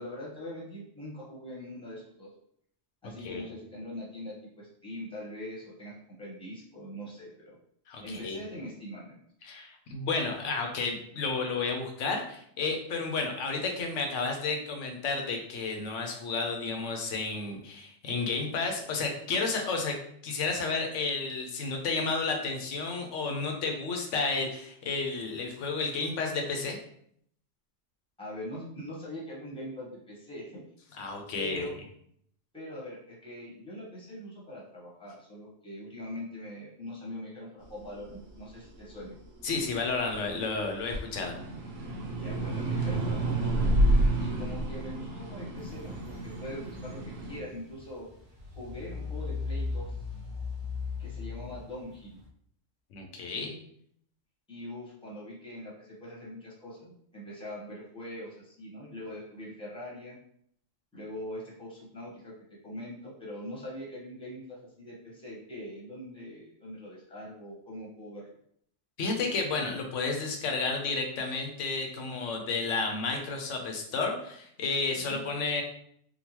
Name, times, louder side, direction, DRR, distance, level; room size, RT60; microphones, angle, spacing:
voice 1, 0.0-2.3 3.0-7.5 8.0-9.2 28.2-30.6 31.3-31.8 32.5-39.1 42.2-43.8 44.1-48.1 48.6-50.0 51.0-52.2 54.5-60.2 60.9-62.3 62.6-68.2 75.1-75.2, left 1 dB, 5° left, -5 dB, 1.0 m, -42 dB
voice 2, 7.9-8.4 9.4-20.0 20.2-26.8 31.0-31.7 39.4-41.4 52.9-53.6 69.0-75.6, left 4 dB, 75° left, 3 dB, 1.0 m, -31 dB
sound 1, 37.8-40.4 40.8-47.4, right 1 dB, 90° right, 1.1 m, -29 dB
sound 2, 45.6-52.3, left 4 dB, 50° right, 0.9 m, -38 dB
3.7 x 2.2 x 2.9 m, 0.68 s
omnidirectional pair, 1.3 m